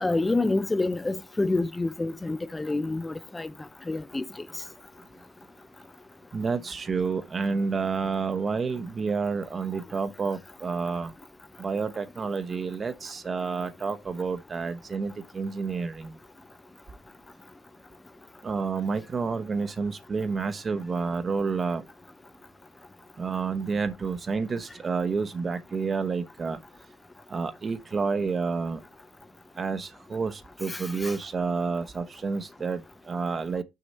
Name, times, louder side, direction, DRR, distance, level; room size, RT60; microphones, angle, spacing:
voice 1, 0.0-3.5 3.9-4.6 30.7-31.2, left 2 dB, 15° left, 0.5 m, -28 dB
voice 2, 6.3-11.1 11.6-16.2 18.4-21.8 23.2-26.6 27.3-28.8 29.6-33.6, right 4 dB, 30° right, 0.9 m, -29 dB
6.9 x 6.5 x 4.2 m
cardioid pair, 105°, 0 cm